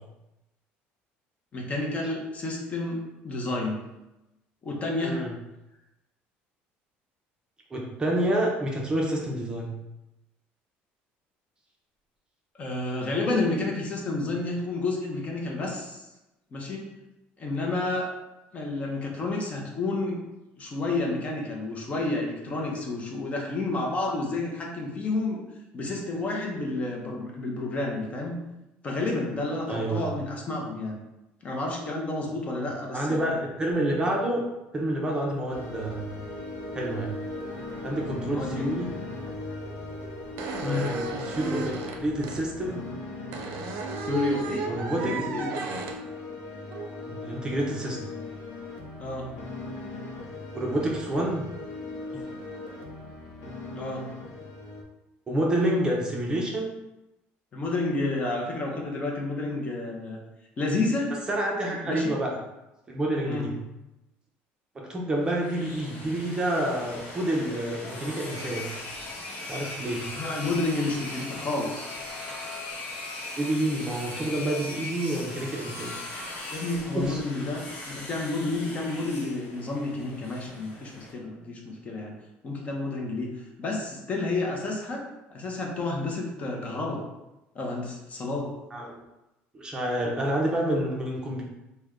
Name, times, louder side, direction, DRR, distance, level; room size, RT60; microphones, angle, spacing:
voice 1, 1.5-3.8 4.6-5.2 12.6-16.0 16.5-16.8 17.4-18.1 18.5-20.2 20.6-25.4 25.7-28.4 28.8-30.9 31.4-33.3 38.2-38.7 40.6-41.0 44.0-45.6 49.0-49.3 53.7-54.1 57.5-60.2 60.6-61.1 61.8-62.1 63.2-63.4 70.2-71.9 76.5-82.1 82.4-83.3 83.6-85.0 85.3-87.0 87.5-88.5, left 2 dB, 30° left, -1 dB, 0.7 m, -30 dB
voice 2, 5.0-5.3 7.7-9.7 29.7-30.1 32.9-34.4 34.7-36.1 36.7-37.1 37.8-38.9 40.6-42.9 44.7-45.1 47.0-48.0 50.5-51.5 52.1-52.2 55.3-56.7 61.3-62.4 62.9-63.6 64.7-68.7 69.4-70.1 73.4-75.9 76.9-77.2 88.7-89.0 89.5-91.4, right 1 dB, 20° right, -2 dB, 0.6 m, -28 dB
sound 1, 35.5-54.8, left 2 dB, 70° left, 0.7 m, -38 dB
sound 2, 40.0-40.1 40.4-42.4 43.3-46.0 46.7-46.9 49.8-49.9 50.7-51.1 52.1-52.3, right 5 dB, 70° right, 0.5 m, -35 dB
sound 3, 65.2-81.1, left 2 dB, 50° left, 1.0 m, -39 dB
3.3 x 2.1 x 3.6 m, 0.97 s
cardioid pair, 125°, 4 cm